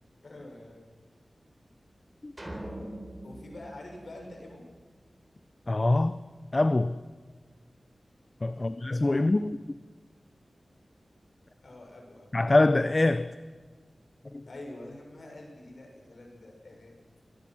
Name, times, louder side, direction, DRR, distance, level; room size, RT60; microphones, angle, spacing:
voice 1, 0.2-0.8 2.7-2.9 3.2-4.7 8.5-8.8 9.1-9.4 11.6-12.3 14.4-17.0, left 1 dB, 65° left, 6.4 m, -46 dB
sound 1, 2.4-4.9, right 1 dB, 20° right, 4.2 m, -43 dB
voice 2, 5.7-6.2 6.5-7.0 8.4-9.6 12.3-13.3 14.3-14.4, left 2 dB, 35° left, 0.7 m, -24 dB
24.0 x 19.0 x 6.1 m
wide cardioid pair, 80°, 0 cm